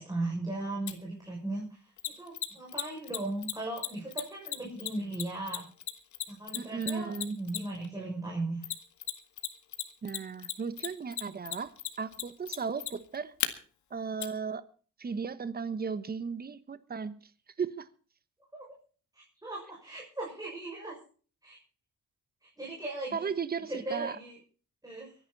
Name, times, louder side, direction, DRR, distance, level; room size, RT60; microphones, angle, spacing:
voice 1, 0.0-1.9 2.2-5.6 6.3-8.7 18.5-18.7 19.1-21.0 21.4-21.6 22.6-23.3 23.7-24.4 24.8-25.1, right 2 dB, 10° right, 6.3 m, -37 dB
Mechanisms, 0.9-1.0 2.0-7.9 8.6-9.5 9.7-13.5 14.2-14.3, left 11 dB, 70° left, 1.8 m, -34 dB
voice 2, 6.5-7.4 10.0-13.3 13.9-14.7 15.0-17.2 17.6-17.9 23.1-24.2, right 5 dB, 30° right, 1.3 m, -35 dB
24.0 x 10.0 x 4.2 m
cardioid pair, 90°, 30 cm